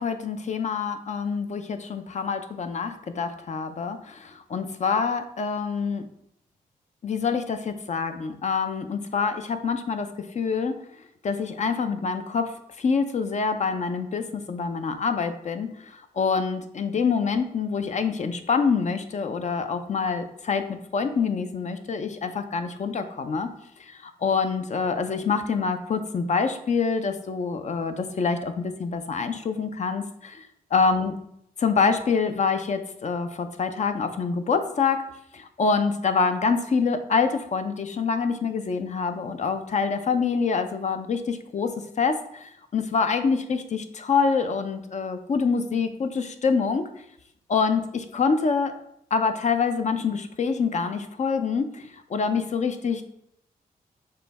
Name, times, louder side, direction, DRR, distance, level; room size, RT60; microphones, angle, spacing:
voice 1, 0.0-6.0 7.0-10.7 11.2-12.5 12.8-23.5 23.8-31.1 31.6-35.0 35.3-46.8 47.5-48.7 49.1-53.0, left 5 dB, 50° left, 8 dB, 0.5 m, -26 dB
6.7 x 2.3 x 3.4 m, 0.75 s
cardioid pair, 70°, 16 cm